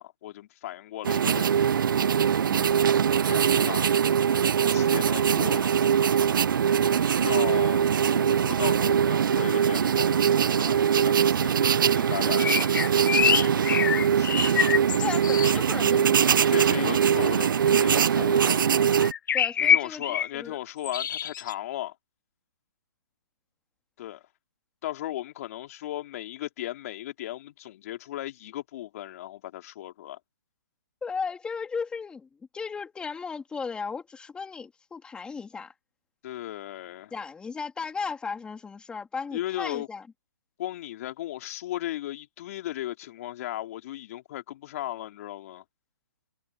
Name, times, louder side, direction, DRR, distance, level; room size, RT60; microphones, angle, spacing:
voice 1, 0.0-1.9 3.2-4.1 4.6-5.7 6.8-12.7 13.4-14.4 16.5-18.9 19.6-21.9 24.0-24.2 24.8-30.2 36.2-37.1 39.3-39.9 40.6-45.6, left 14 dB, 45° left, 3.3 m, -36 dB
sound 1, 1.0-19.1, right 8 dB, 65° right, 0.7 m, -22 dB
sound 2, 12.4-15.5 19.0-20.3 20.8-21.5, left 8 dB, 60° left, 1.0 m, -25 dB
voice 2, 15.0-16.9 19.3-20.5 31.0-32.3 32.5-35.7 37.1-40.1, left 5 dB, 10° left, 3.1 m, -36 dB
hypercardioid pair, 145°, 12 cm